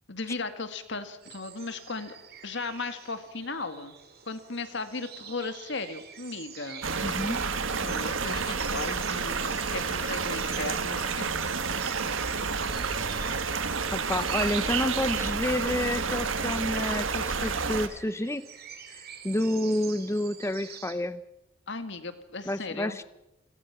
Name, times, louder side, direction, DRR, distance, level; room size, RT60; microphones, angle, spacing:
voice 1, 0.1-2.2 2.4-4.0 4.3-6.8 7.8-11.5 11.8-12.1 21.7-23.0, left 3 dB, 60° left, 10 dB, 2.0 m, -36 dB
sound 1, 1.2-20.9, right 8 dB, 50° right, 3.0 m, -47 dB
sound 2, 6.8-17.9, right 5 dB, 70° right, 1.5 m, -30 dB
voice 2, 7.0-7.4 13.9-18.4 18.9-21.2 22.5-23.0, left 1 dB, 15° left, 14 dB, 0.7 m, -29 dB
28.5 x 18.0 x 6.0 m, 0.91 s
head